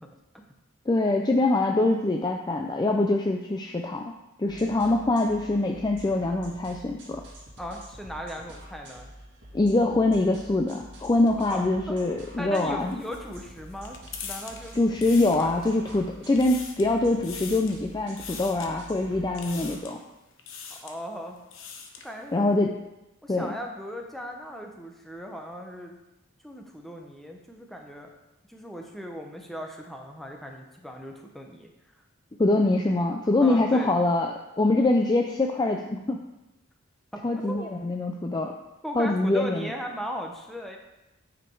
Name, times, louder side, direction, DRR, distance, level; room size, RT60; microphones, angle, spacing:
voice 1, 0.9-4.1 4.4-7.2 9.5-13.0 14.7-20.0 22.3-22.8 23.3-23.5 32.4-36.2 37.2-38.5 39.0-39.7, left 2 dB, 20° left, 3 dB, 0.4 m, -24 dB
sound 1, 4.5-19.8, right 1 dB, 60° right, 2.4 m, -47 dB
voice 2, 7.6-9.1 11.5-12.0 12.4-14.8 15.4-15.5 20.7-21.4 22.0-22.5 23.2-26.0 26.4-28.1 28.5-31.7 33.4-33.9 37.1-37.7 38.8-40.8, equal, ahead, 2 dB, 0.8 m, -37 dB
sound 2, 12.8-15.9 16.2-16.9 17.2-17.8 18.2-18.7 19.4-20.0 20.4-21.0 21.4-22.1, left 6 dB, 65° left, 0.9 m, -41 dB
9.1 x 5.1 x 4.6 m, 0.96 s
head